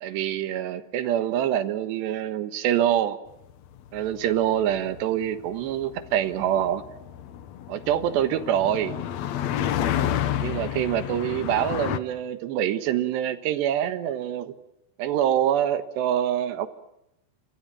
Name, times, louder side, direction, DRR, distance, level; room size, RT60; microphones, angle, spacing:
voice 1, 0.0-3.2 3.9-6.8 7.7-9.0 10.4-14.5 15.0-16.7, right 11 dB, 80° right, 11 dB, 3.5 m, -25 dB
sound 1, 3.5-12.0, left 10 dB, 85° left, 1.5 m, -31 dB
29.5 x 25.0 x 7.5 m, 0.86 s
omnidirectional pair, 4.9 m